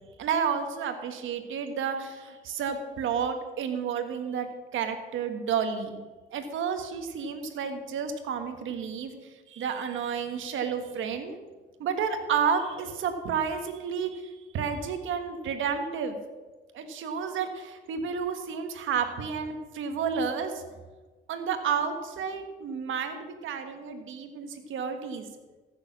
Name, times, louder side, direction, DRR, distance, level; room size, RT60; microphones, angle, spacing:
voice 1, 0.2-6.0 6.3-9.1 9.5-11.4 11.8-16.2 16.7-20.6 21.3-25.3, right 6 dB, 80° right, 7 dB, 1.5 m, -31 dB
15.0 x 6.9 x 6.1 m, 1.3 s
cardioid pair, 90°, 20 cm